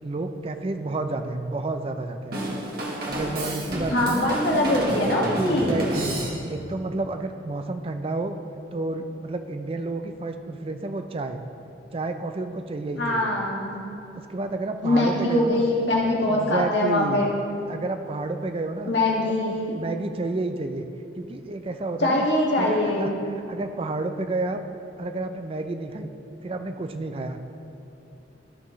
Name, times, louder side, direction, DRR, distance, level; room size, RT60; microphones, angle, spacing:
voice 1, 0.0-2.4 3.1-4.3 4.9-5.1 5.4-6.2 6.5-8.4 8.7-11.4 11.9-13.4 14.3-15.7 16.2-17.3 17.7-18.9 19.3-20.9 21.1-22.3 22.6-24.6 25.0-26.1 26.4-27.4, right 2 dB, 30° right, 7 dB, 0.4 m, -30 dB
Drum kit / Drum, 2.3-6.7, right 1 dB, 55° right, 1.5 m, -30 dB
voice 2, 3.9-5.8 13.0-13.7 14.8-17.3 18.9-19.8 22.0-23.1, left 1 dB, 70° left, -3 dB, 1.7 m, -23 dB
13.5 x 5.9 x 3.1 m, 2.8 s
head